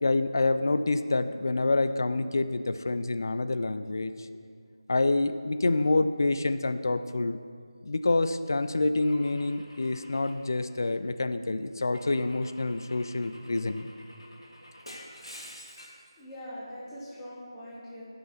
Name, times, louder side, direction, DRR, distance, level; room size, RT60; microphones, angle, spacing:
voice 1, 0.0-4.3 4.9-7.4 7.8-13.9, left 2 dB, 45° left, 11 dB, 0.3 m, -27 dB
Car / Engine / Glass, 9.0-11.2 11.9-16.1, equal, 85° left, 1.3 m, -49 dB
voice 2, 16.2-18.0, equal, 5° left, -11 dB, 1.0 m, -42 dB
11.0 x 5.6 x 4.3 m, 2.3 s
figure-of-eight pair, 165°, 3 cm